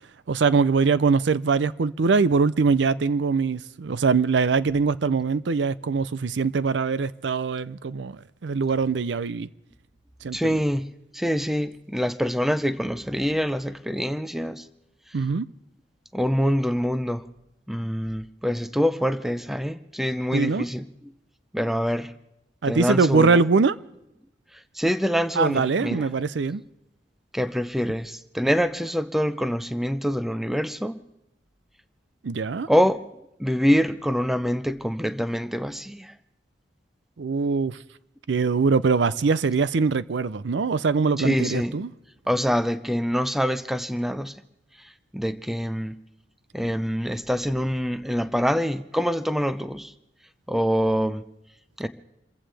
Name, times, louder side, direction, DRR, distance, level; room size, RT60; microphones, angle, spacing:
voice 1, 0.3-9.5 10.2-10.6 15.1-15.4 20.3-20.6 22.6-23.8 25.4-26.6 32.2-32.7 37.2-37.8 38.3-41.9, right 4 dB, 75° right, 0.5 m, -22 dB
voice 2, 10.3-10.9 11.1-14.7 16.1-17.3 17.7-20.9 21.5-22.1 22.6-23.4 24.7-26.1 27.3-31.0 32.7-33.1 33.4-36.1 41.2-41.8 42.3-44.3 45.1-46.0 46.5-49.9 50.5-51.2 51.8-51.9, equal, ahead, 0.5 m, -25 dB
28.0 x 15.0 x 3.4 m
head